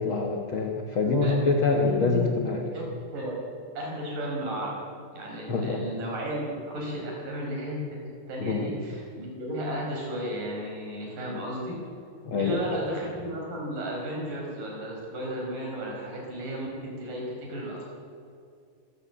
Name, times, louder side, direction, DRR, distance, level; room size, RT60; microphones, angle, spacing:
voice 1, 0.0-2.6 5.5-5.9 8.4-8.7 12.2-12.8, left 4 dB, 65° left, 2 dB, 1.2 m, -26 dB
voice 2, 1.0-2.3 2.7-2.8 3.1-3.4 3.7-4.8 5.1-8.0 8.3-11.8 12.4-17.2 17.5-17.9, equal, 50° right, -2 dB, 6.4 m, -33 dB
24.5 x 14.0 x 8.2 m, 2.4 s
omnidirectional pair, 4.8 m